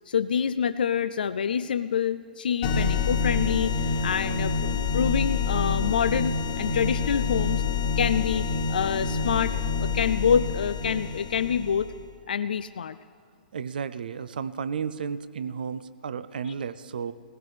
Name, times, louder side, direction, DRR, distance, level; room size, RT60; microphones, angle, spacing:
voice 1, 0.1-3.7 4.0-7.6 8.0-11.9 12.3-13.0, left 7 dB, 70° left, 13 dB, 0.3 m, -26 dB
sound 1, 2.6-12.0, left 5 dB, 40° left, 1.5 m, -27 dB
voice 2, 13.5-17.1, right 6 dB, 65° right, 14 dB, 0.6 m, -33 dB
20.5 x 16.5 x 3.3 m, 2.1 s
figure-of-eight pair, 115°, 5 cm